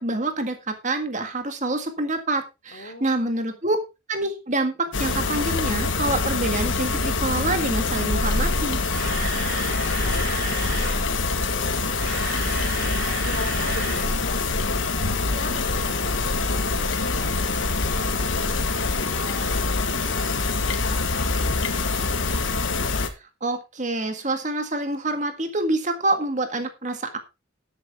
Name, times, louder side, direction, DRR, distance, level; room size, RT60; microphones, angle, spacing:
voice 1, 0.0-3.8 4.1-8.8 23.4-27.2, right 2 dB, 35° right, 7 dB, 1.8 m, -26 dB
voice 2, 2.7-3.6 9.3-18.6 18.9-20.3 20.7-22.2, left 2 dB, 50° left, 3 dB, 3.0 m, -42 dB
sound 1, 4.9-23.1, left 3 dB, 75° left, 1.4 m, -25 dB
Camera, 8.6-11.0 11.8-14.1 14.3-14.5 15.0-15.1, right 3 dB, 55° right, 5.8 m, -33 dB
sound 2, 9.2-19.9, equal, 15° right, 3.9 m, -49 dB
12.5 x 8.7 x 3.6 m, 0.26 s
head